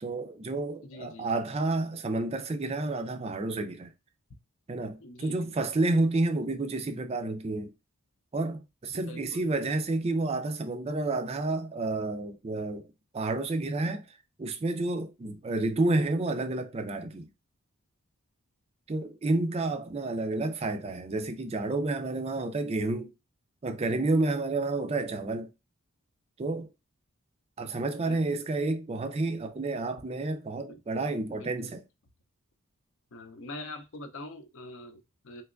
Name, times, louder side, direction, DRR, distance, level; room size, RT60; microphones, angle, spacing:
voice 1, 0.0-3.9 4.7-7.7 8.3-12.8 13.1-14.1 14.4-17.3 18.9-23.1 23.6-25.5 26.4-26.7 27.6-31.8, right 2 dB, 30° right, 0.3 m, -30 dB
voice 2, 0.8-1.3 5.0-5.6 8.9-9.5 28.1-28.2 30.7-30.8 31.3-31.7 33.1-35.4, left 2 dB, 60° left, 0.6 m, -44 dB
3.3 x 2.9 x 2.4 m
head